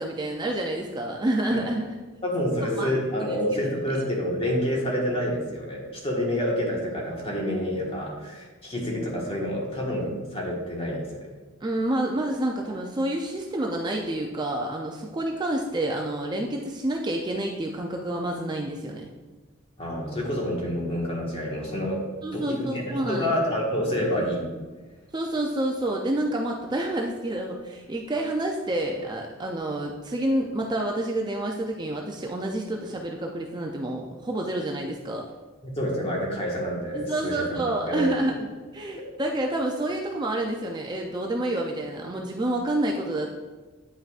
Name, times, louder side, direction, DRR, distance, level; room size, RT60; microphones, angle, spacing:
voice 1, 0.0-2.0 2.8-2.9 3.3-3.4 11.6-19.1 22.2-23.3 25.1-35.2 36.9-38.5 38.7-43.3, right 1 dB, 20° right, 0 dB, 0.4 m, -28 dB
voice 2, 2.2-11.3 19.8-22.0 22.3-24.5 35.6-38.3, equal, 25° left, -3 dB, 1.5 m, -28 dB
9.0 x 5.6 x 2.4 m, 1.3 s
head